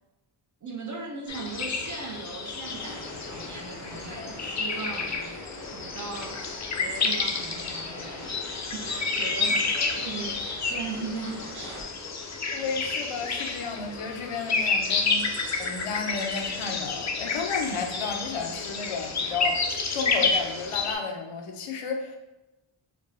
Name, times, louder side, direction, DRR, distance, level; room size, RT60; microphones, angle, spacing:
voice 1, 0.6-5.4 5.7-12.1, right 4 dB, 40° right, 2 dB, 0.5 m, -39 dB
sound 1, 1.3-20.9, left 4 dB, 35° left, 0.4 m, -30 dB
sound 2, 2.6-11.8, left 1 dB, 85° right, 1.3 m, -44 dB
voice 2, 12.5-15.3 15.6-19.6 19.9-22.2, left 5 dB, 85° left, 3 dB, 0.6 m, -32 dB
4.5 x 2.2 x 2.6 m, 0.98 s
wide cardioid pair, 115°, 50 cm